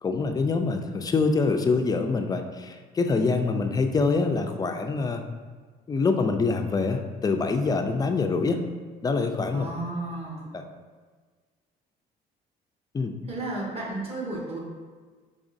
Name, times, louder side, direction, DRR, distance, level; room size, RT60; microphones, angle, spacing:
voice 1, 0.0-5.2 5.9-8.6 9.0-9.7 10.5-10.6 12.9-13.2, left 4 dB, 20° left, 5 dB, 0.3 m, -25 dB
voice 2, 9.5-10.4 13.3-14.6, right 2 dB, 35° right, -3 dB, 1.3 m, -33 dB
5.0 x 3.4 x 2.6 m, 1.5 s
cardioid pair, 110°, 17 cm